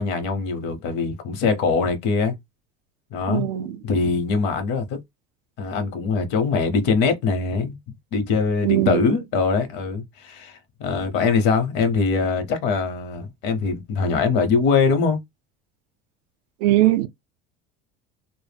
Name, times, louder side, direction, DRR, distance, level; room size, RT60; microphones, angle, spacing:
voice 1, 0.0-2.4 3.1-3.5 3.8-5.0 5.6-7.8 8.1-15.2, left 4 dB, 55° left, 0.7 m, -22 dB
voice 2, 3.3-3.8 8.6-9.1 16.6-17.1, right 14 dB, 75° right, 0.4 m, -20 dB
2.1 x 2.0 x 3.3 m
cardioid pair, 150°, 21 cm